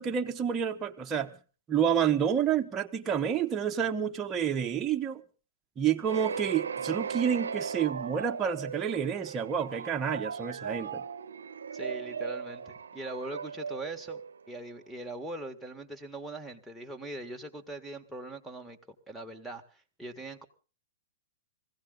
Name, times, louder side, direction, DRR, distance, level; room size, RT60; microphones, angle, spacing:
voice 1, 0.0-1.3 1.7-5.2 5.8-11.0, right 8 dB, 20° right, 1.1 m, -29 dB
sound 1, 6.0-14.8, right 6 dB, 90° right, 0.7 m, -37 dB
voice 2, 11.7-14.2 14.5-18.8 19.1-20.5, right 1 dB, ahead, 1.7 m, -41 dB
21.0 x 16.0 x 3.9 m
hypercardioid pair, 130°, 0 cm